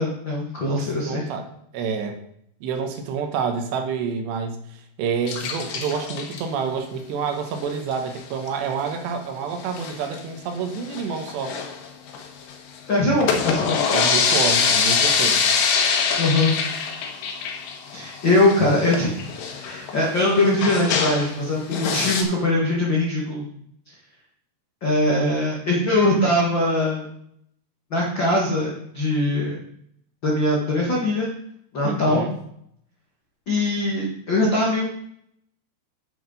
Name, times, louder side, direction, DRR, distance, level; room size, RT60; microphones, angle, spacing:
voice 1, 0.0-1.3 12.9-13.8 16.2-16.5 17.9-19.2 19.5-23.4 24.8-27.1 27.9-29.6 30.2-31.3 31.7-32.2 33.5-34.8, left 1 dB, 60° left, -4 dB, 1.2 m, -21 dB
voice 2, 0.7-1.5 1.7-2.2 2.6-4.6 5.0-11.6 13.9-15.5 21.8-22.1 31.8-32.3, right 6 dB, 80° right, 5 dB, 3.2 m, -28 dB
sound 1, 5.3-6.4 7.6-7.9 8.2-8.3 8.5-8.6 8.9-9.0 9.6-10.2 10.7-12.5 13.0-21.4 21.7-22.2, left 6 dB, 80° left, 3.5 m, -24 dB
9.1 x 8.7 x 4.0 m, 0.70 s
omnidirectional pair, 5.1 m